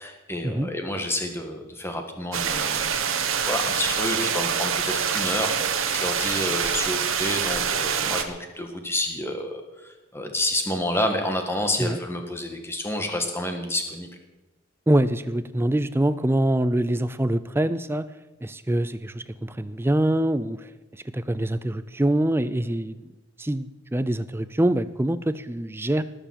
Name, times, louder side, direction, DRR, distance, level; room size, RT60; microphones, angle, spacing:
voice 1, 0.0-2.8 3.4-14.1, left 1 dB, 10° left, 5 dB, 1.6 m, -29 dB
sound 1, 2.3-8.2, right 7 dB, 70° right, 1.3 m, -25 dB
voice 2, 14.9-18.1 18.4-20.7 21.1-23.1 23.4-26.0, right 1 dB, 10° right, 14 dB, 0.4 m, -24 dB
19.0 x 7.1 x 7.5 m, 1.1 s
head